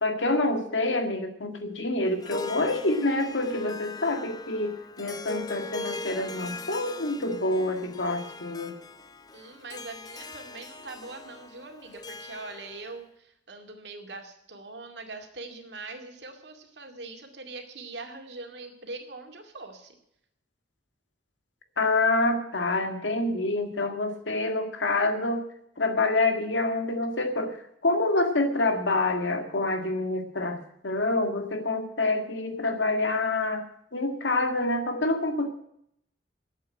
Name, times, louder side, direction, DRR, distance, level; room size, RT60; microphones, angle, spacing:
voice 1, 0.0-8.7 21.8-25.4 25.8-27.6 27.8-30.6 30.8-33.6 33.9-35.5, left 2 dB, 90° left, 6 dB, 1.9 m, -27 dB
Harp, 2.1-13.0, left 2 dB, 20° left, 0.7 m, -41 dB
voice 2, 9.3-19.9, right 3 dB, 65° right, 4 dB, 2.3 m, -42 dB
11.5 x 8.3 x 8.7 m, 0.74 s
head